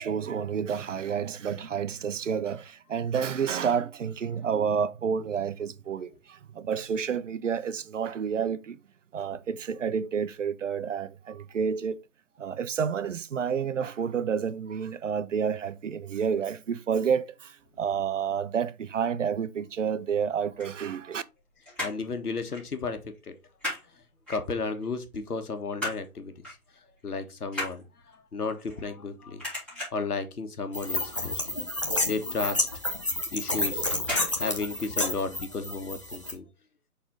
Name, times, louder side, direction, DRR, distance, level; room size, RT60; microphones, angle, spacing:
voice 1, 0.0-8.8 9.1-12.0 12.4-21.2, right 7 dB, 55° right, 0.6 m, -29 dB
sound 1, 20.5-21.4 21.6-22.1 22.5-22.7 23.0-23.8 24.3-24.8 25.3-26.1 26.4-26.7 27.0-29.1 29.4-30.1 30.6-30.9 31.2-31.3 31.6-31.7 32.2-32.3 33.1-33.4 34.0-34.3 34.6-34.7, left 1 dB, ahead, 3.4 m, -35 dB
voice 2, 21.8-23.0 23.3-23.4 24.3-26.3 27.0-27.8 28.3-29.4 29.9-31.4 32.1-32.7 33.3-33.9 34.4-36.4, left 4 dB, 85° left, 1.5 m, -33 dB
sound 2, 30.7-36.3, left 1 dB, 20° left, 0.6 m, -30 dB
5.9 x 4.2 x 3.8 m
hypercardioid pair, 160°, 44 cm